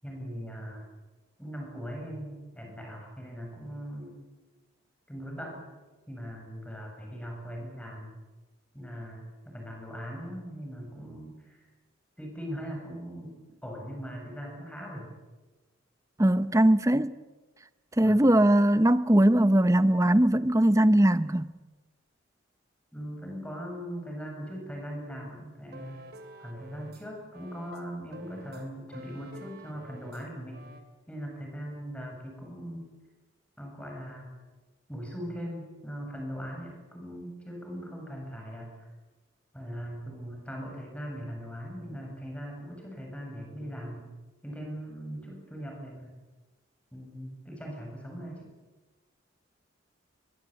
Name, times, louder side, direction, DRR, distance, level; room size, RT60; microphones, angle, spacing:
voice 1, 0.0-0.9 1.4-4.2 5.1-5.7 6.1-8.2 8.7-11.6 12.2-13.4 13.6-15.2 18.0-18.2 22.9-26.0 26.4-30.7 31.1-32.8 33.6-34.3 34.9-38.9 39.5-44.1 44.4-46.1 46.9-48.5, equal, 5° left, 7.5 m, -40 dB
voice 2, 16.2-17.1 18.0-21.5, right 1 dB, 15° right, 0.7 m, -21 dB
sound 1, 25.7-27.1 27.3-30.3 30.5-30.8, right 1 dB, 50° right, 3.0 m, -48 dB
23.0 x 22.5 x 9.0 m
head